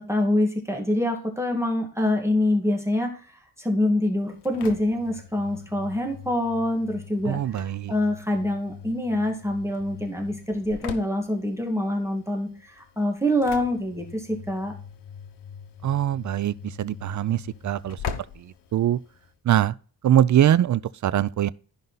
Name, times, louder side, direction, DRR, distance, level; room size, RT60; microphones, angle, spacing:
voice 1, 0.0-14.7, left 1 dB, 5° right, 1.9 m, -25 dB
Engine / Slam, 4.2-19.3, left 7 dB, 80° left, 1.2 m, -42 dB
voice 2, 7.2-7.9 15.8-18.0 18.4-19.0 19.4-19.7 20.0-21.5, right 11 dB, 50° right, 0.5 m, -23 dB
13.0 x 5.4 x 4.0 m
cardioid pair, 115°, 40 cm